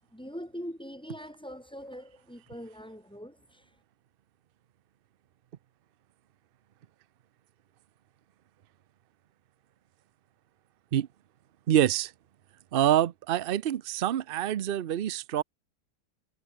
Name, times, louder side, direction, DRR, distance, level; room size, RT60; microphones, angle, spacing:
voice 1, 0.1-3.7, equal, 5° left, 4.3 m, -42 dB
voice 2, 11.7-12.1 12.7-15.4, right 11 dB, 80° right, 0.5 m, -26 dB
omnidirectional pair, 1.8 m